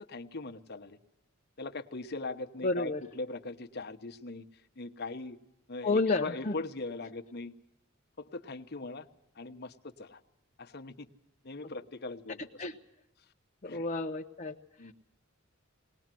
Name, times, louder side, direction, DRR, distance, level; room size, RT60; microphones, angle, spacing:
voice 1, 0.1-1.0 1.6-4.4 4.8-5.4 5.7-7.5 8.2-9.1 9.3-10.2 10.6-11.1 11.4-12.6 13.6-13.9 14.8-14.9, left 3 dB, 50° left, 7 dB, 1.1 m, -40 dB
voice 2, 2.6-3.0 5.8-6.5 12.6-12.7 13.6-14.6, left 3 dB, 35° left, 0 dB, 0.7 m, -30 dB
20.0 x 19.5 x 7.6 m, 0.81 s
head